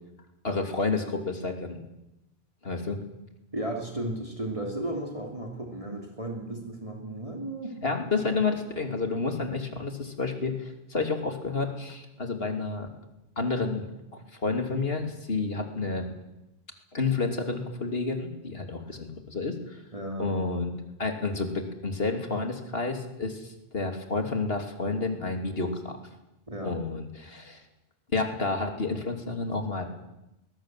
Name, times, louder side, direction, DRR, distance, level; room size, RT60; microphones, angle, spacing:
voice 1, 0.4-1.8 2.6-3.0 7.8-12.9 13.4-13.8 14.1-16.1 16.9-19.8 20.2-20.7 21.0-26.0 26.6-27.6 28.1-29.9, left 3 dB, 70° left, 5 dB, 3.2 m, -30 dB
voice 2, 3.5-7.7 19.9-20.3 26.5-26.8, right 1 dB, 30° right, 1 dB, 3.1 m, -34 dB
21.5 x 21.0 x 7.7 m, 0.90 s
omnidirectional pair, 1.1 m